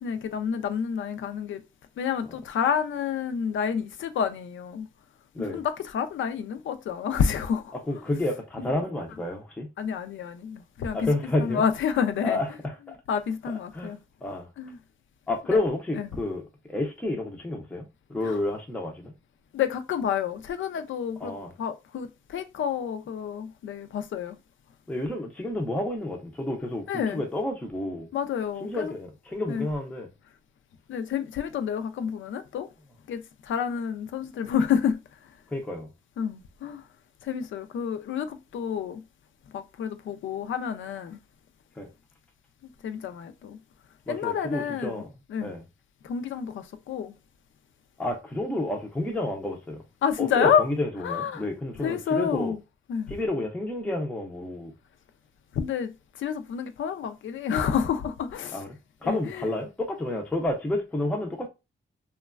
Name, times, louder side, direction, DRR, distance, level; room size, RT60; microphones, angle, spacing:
voice 1, 0.0-1.6 2.0-4.9 5.4-7.7 9.8-11.1 11.4-12.4 13.1-14.0 14.6-14.8 15.5-15.6 16.0-16.1 18.2-18.4 19.5-24.4 26.9-27.2 28.1-28.9 29.5-29.7 30.9-32.7 33.1-35.0 36.2-36.8 37.2-39.0 39.5-41.2 42.8-43.6 44.1-45.0 45.3-45.5 46.0-47.1 50.0-50.6 51.0-51.4 51.8-52.6 52.9-53.1 55.5-58.6 59.0-59.5, left 7 dB, 80° left, 0.4 m, -29 dB
voice 2, 7.9-9.7 10.9-11.6 12.2-13.0 13.7-13.9 14.2-14.5 15.3-17.8 18.1-19.1 21.2-21.5 24.9-26.8 27.1-28.1 28.6-30.1 35.5-35.9 41.8-41.9 44.1-45.1 45.4-45.6 48.0-49.8 50.2-52.6 53.1-54.7 58.5-58.7 59.0-61.5, left 2 dB, 5° left, 0.4 m, -30 dB
3.0 x 2.2 x 2.3 m
wide cardioid pair, 175°, 20 cm